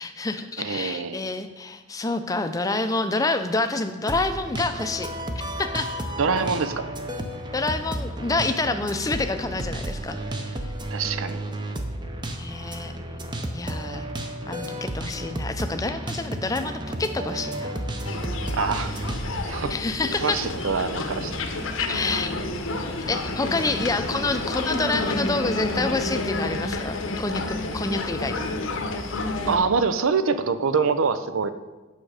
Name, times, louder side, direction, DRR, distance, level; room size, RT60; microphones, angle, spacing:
voice 1, 0.0-5.1 5.6-5.9 7.5-10.7 12.4-13.0 13.5-14.1 14.5-17.8 19.2-20.4 21.9-22.7 23.1-28.4, left 3 dB, 15° left, 8 dB, 0.5 m, -28 dB
voice 2, 0.6-1.3 6.2-6.9 10.9-11.5 18.5-19.1 19.4-19.7 20.2-21.4 29.5-31.5, right 5 dB, 85° right, 12 dB, 0.6 m, -25 dB
sound 1, 4.1-19.4, right 1 dB, 20° right, 0.6 m, -32 dB
bharatpur black-necked-stork grey heron, 18.0-29.6, left 2 dB, 85° left, 0.9 m, -30 dB
8.8 x 6.3 x 4.8 m, 1.2 s
head